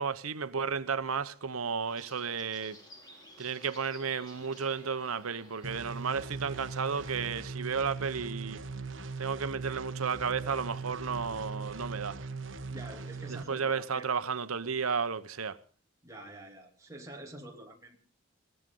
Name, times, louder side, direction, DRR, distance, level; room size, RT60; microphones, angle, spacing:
voice 1, 0.0-2.8 3.4-8.6 9.2-12.2 13.3-15.6, right 6 dB, 90° right, 1.0 m, -33 dB
sound 1, 1.9-7.2, equal, 20° left, 5.7 m, -55 dB
sound 2, 5.6-13.4, right 4 dB, 65° right, 1.3 m, -40 dB
voice 2, 12.7-14.2 16.0-18.0, right 1 dB, 15° right, 2.9 m, -47 dB
21.5 x 17.0 x 3.9 m
head